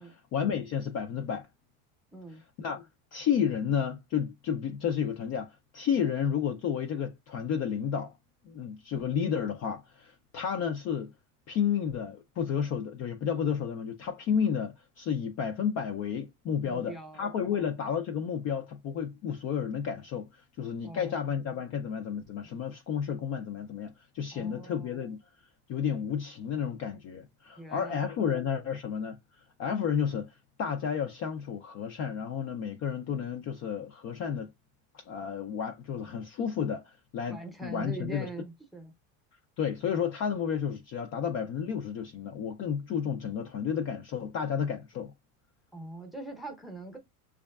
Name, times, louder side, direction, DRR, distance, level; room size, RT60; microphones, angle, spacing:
voice 1, 0.0-1.5 2.3-8.1 8.5-11.1 11.5-25.2 25.7-29.2 29.6-34.5 34.9-38.3 39.6-45.1, left 7 dB, 40° left, 0.4 m, -32 dB
voice 2, 2.1-2.4 16.6-17.7 20.8-21.2 24.3-24.9 27.6-28.1 37.3-38.9 45.7-47.0, right 2 dB, ahead, 0.7 m, -43 dB
6.0 x 2.3 x 2.2 m
supercardioid pair, 115°, 44 cm